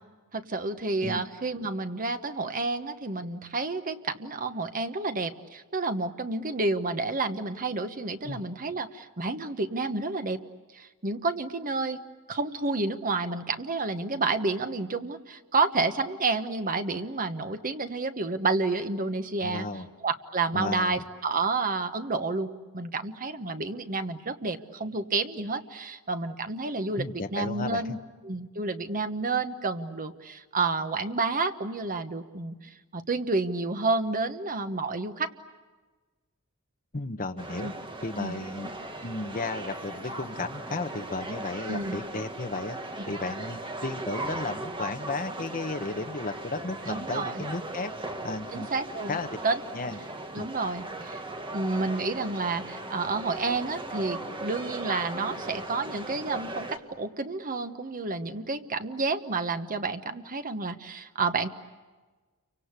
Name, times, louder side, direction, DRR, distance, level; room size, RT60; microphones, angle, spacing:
voice 1, 0.3-10.4 10.7-12.0 12.3-19.7 20.0-27.0 27.3-28.0 28.2-35.3 37.6-37.7 38.2-38.4 41.7-42.0 46.9-47.4 48.5-49.2 49.4-49.6 50.3-51.2 51.5-61.5, right 3 dB, 40° right, 9 dB, 1.3 m, -30 dB
voice 2, 19.4-19.9 20.5-21.0 27.0-28.0 36.9-37.7 38.0-38.7 39.0-42.8 43.1-47.9 48.2-48.7 49.1-49.3 49.7-50.0 50.4-50.5, left 3 dB, 40° left, 6 dB, 1.2 m, -34 dB
sound 1, 37.4-56.8, right 2 dB, 25° right, 1.8 m, -38 dB
29.5 x 24.5 x 8.3 m, 1.3 s
head